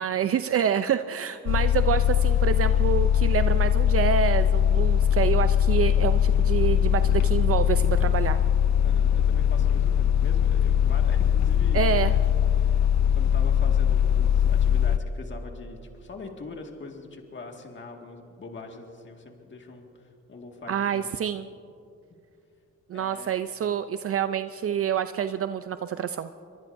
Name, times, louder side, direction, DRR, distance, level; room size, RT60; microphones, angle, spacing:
voice 1, 0.0-8.4 11.7-12.1 20.7-21.5 22.9-26.3, right 8 dB, 50° right, 10 dB, 0.5 m, -27 dB
sound 1, 1.5-15.0, left 9 dB, 70° left, 0.6 m, -21 dB
voice 2, 8.8-12.2 12.6-12.8 13.1-21.2 22.1-22.2 22.9-23.3, left 3 dB, 40° left, 2 dB, 1.9 m, -43 dB
24.0 x 22.5 x 2.7 m, 2.5 s
cardioid pair, 85°, 29 cm